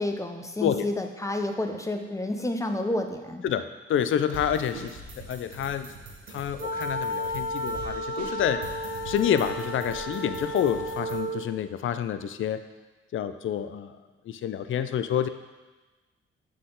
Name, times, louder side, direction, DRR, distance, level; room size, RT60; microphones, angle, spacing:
voice 1, 0.0-3.4, left 1 dB, 10° left, 4 dB, 0.8 m, -30 dB
voice 2, 3.4-5.9 6.3-8.6 9.1-12.6 13.1-14.0 14.3-15.3, left 9 dB, 45° left, 11 dB, 0.4 m, -28 dB
sound 1, 4.3-11.2, right 2 dB, 80° right, 1.1 m, -43 dB
sound 2, 6.6-11.5, equal, 20° right, 2.0 m, -33 dB
7.7 x 3.8 x 3.8 m, 1.2 s
hypercardioid pair, 50°, 29 cm